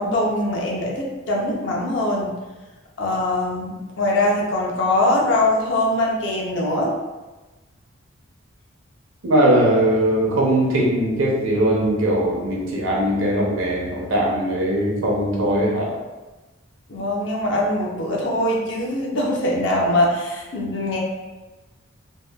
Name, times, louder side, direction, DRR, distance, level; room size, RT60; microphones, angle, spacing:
voice 1, 0.0-2.3 3.0-6.9 16.9-21.0, left 1 dB, 60° left, -2 dB, 0.5 m, -22 dB
voice 2, 9.2-15.9, right 1 dB, 80° right, -3 dB, 0.6 m, -20 dB
2.8 x 2.1 x 2.3 m, 1.2 s
head